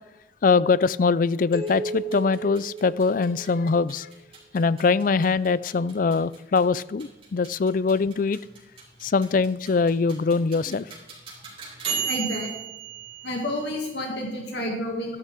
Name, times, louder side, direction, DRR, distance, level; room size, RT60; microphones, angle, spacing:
voice 1, 0.4-4.1 4.5-8.4 9.0-10.8, left 4 dB, 50° left, 18 dB, 0.4 m, -22 dB
sound 1, 1.5-3.9, right 2 dB, 30° left, 4.1 m, -35 dB
sound 2, 1.6-14.3, right 7 dB, 30° right, 4.7 m, -37 dB
voice 2, 12.1-12.5 13.2-15.2, left 1 dB, 75° left, 0 dB, 2.4 m, -30 dB
13.5 x 12.5 x 3.7 m, 1.0 s
head